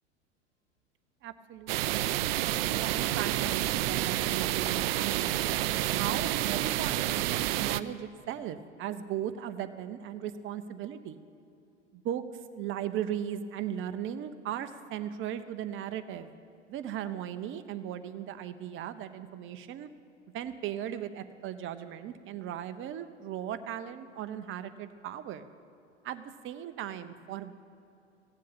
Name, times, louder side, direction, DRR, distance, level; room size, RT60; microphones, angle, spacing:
voice 1, 1.2-2.1 2.6-11.2 11.9-12.2 12.5-16.3 16.7-19.9 20.3-25.4 26.0-27.5, right 10 dB, 35° right, 11 dB, 0.9 m, -37 dB
sound 1, 1.7-7.8, right 14 dB, 55° right, 0.5 m, -29 dB
16.5 x 7.5 x 8.8 m, 2.7 s
figure-of-eight pair, 85°, 37 cm